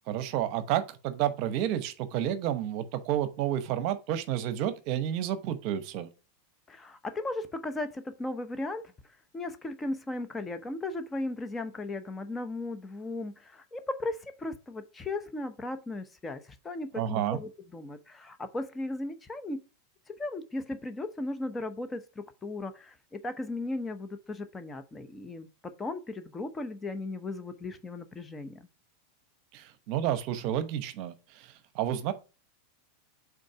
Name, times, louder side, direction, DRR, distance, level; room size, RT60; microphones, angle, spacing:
voice 1, 0.1-6.1 17.0-17.4 29.5-32.1, right 11 dB, 55° right, 0.8 m, -30 dB
voice 2, 6.7-8.9 9.3-19.6 20.1-22.0 22.4-28.7, left 2 dB, 15° left, 0.8 m, -36 dB
5.1 x 3.9 x 4.8 m
hypercardioid pair, 105°, 0 cm